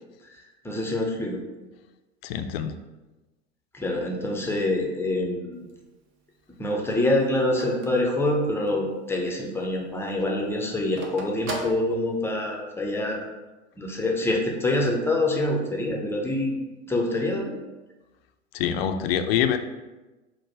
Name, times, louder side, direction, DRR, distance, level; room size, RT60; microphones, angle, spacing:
voice 1, 0.2-1.4 3.7-5.6 6.6-13.3 13.8-16.6 16.9-17.6, left 1 dB, 5° left, 0 dB, 0.6 m, -26 dB
voice 2, 2.2-2.7 18.5-19.6, left 9 dB, 55° left, 8 dB, 0.5 m, -25 dB
Telephone, 5.5-8.9 9.3-9.4 9.7-12.6, right 2 dB, 35° right, 0.8 m, -38 dB
4.6 x 2.1 x 4.6 m, 1.1 s
figure-of-eight pair, 85°, 36 cm